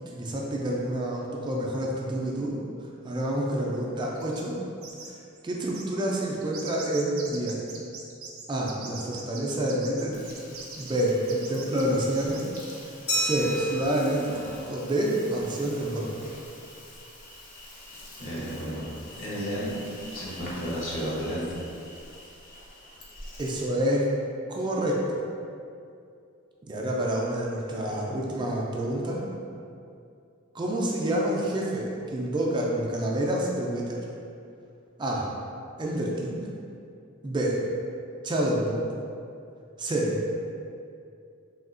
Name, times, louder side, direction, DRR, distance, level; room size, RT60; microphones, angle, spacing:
voice 1, 0.0-2.6 3.0-4.6 5.4-7.6 8.5-10.2 10.8-12.4 13.2-14.3 14.7-16.1 23.4-24.0 24.5-25.2 26.6-29.2 30.5-34.0 35.0-35.3 35.8-36.4 37.2-37.6 38.2-38.8 39.8-40.2, right 1 dB, 20° right, -3 dB, 0.3 m, -28 dB
sound 1, 4.2-4.5 4.8-5.1 5.4-5.5 5.7-12.6, right 5 dB, 90° right, 0.4 m, -42 dB
Insect, 10.1-23.7, left 1 dB, 45° left, 0.5 m, -45 dB
Glass, 13.1-15.5, equal, 85° left, 1.4 m, -33 dB
voice 2, 18.2-18.9 19.2-19.8 20.1-21.6, equal, 65° left, -7 dB, 0.8 m, -32 dB
3.5 x 2.3 x 2.4 m, 2.5 s
head